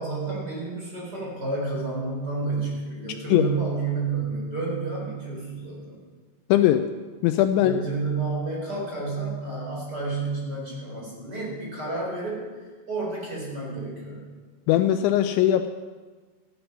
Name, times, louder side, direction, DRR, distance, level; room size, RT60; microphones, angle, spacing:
voice 1, 0.0-6.0 7.6-12.4 12.9-14.3, right 3 dB, 20° right, -3 dB, 4.3 m, -30 dB
voice 2, 6.5-6.9 7.2-7.8 14.7-15.7, left 12 dB, 85° left, 9 dB, 2.7 m, -20 dB
14.0 x 11.5 x 6.0 m, 1.4 s
omnidirectional pair, 5.7 m